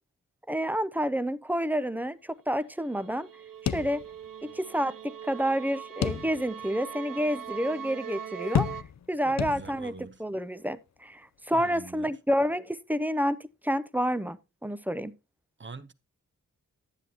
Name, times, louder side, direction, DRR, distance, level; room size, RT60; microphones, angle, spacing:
voice 1, 0.5-3.3 3.6-4.0 4.4-8.7 9.1-9.9 10.2-15.1, equal, 5° right, 0.5 m, -29 dB
sound 1, 2.9-8.8, right 8 dB, 75° right, 0.6 m, -41 dB
sound 2, 3.7-4.5 4.8-4.9 6.0-6.7 7.2-7.3 8.5-9.1 9.4-10.0, left 8 dB, 55° left, 0.5 m, -31 dB
voice 2, 9.2-10.2 11.5-12.1 15.6-15.9, right 4 dB, 35° right, 0.7 m, -44 dB
11.0 x 9.8 x 2.8 m
wide cardioid pair, 100°, 33 cm